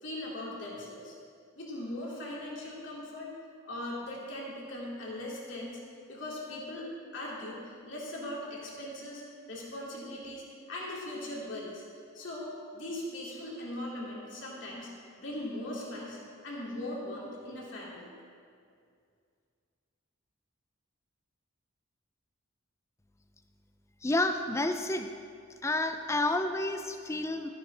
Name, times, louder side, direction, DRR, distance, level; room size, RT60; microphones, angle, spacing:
voice 1, 0.0-1.2 1.6-3.3 3.6-5.8 6.1-9.2 9.5-11.8 12.1-18.1, left 1 dB, 60° left, -4 dB, 2.5 m, -40 dB
voice 2, 24.0-25.1 25.6-27.5, left 2 dB, 15° left, 7 dB, 0.4 m, -30 dB
13.0 x 11.0 x 3.3 m, 2.3 s
head